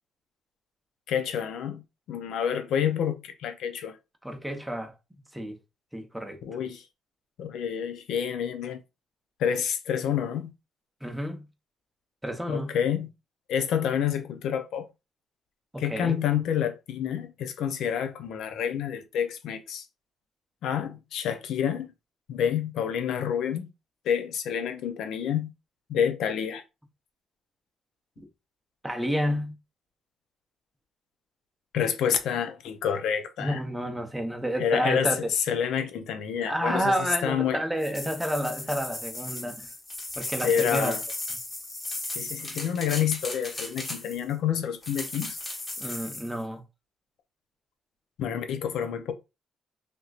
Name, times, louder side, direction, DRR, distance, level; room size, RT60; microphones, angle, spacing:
voice 1, 1.1-1.8 2.1-4.0 6.4-6.8 7.4-8.8 9.4-10.5 12.5-13.1 13.5-14.9 15.8-19.8 20.6-21.9 22.3-23.7 24.1-25.5 25.9-26.6 31.7-33.6 34.6-35.1 35.5-36.9 37.2-37.6 40.4-41.0 42.1-45.4 48.2-49.1, left 8 dB, 80° left, 0.6 m, -28 dB
voice 2, 4.2-4.9 5.3-5.6 5.9-6.4 11.0-11.4 12.2-12.7 15.7-16.1 28.2-28.3 28.8-29.5 33.4-35.2 36.4-39.7 40.2-41.0 45.8-46.6, equal, 5° right, 0.8 m, -30 dB
sound 1, 37.8-44.3 44.8-46.3, left 2 dB, 25° left, 1.2 m, -36 dB
3.4 x 2.9 x 2.4 m
cardioid pair, 90°, 0 cm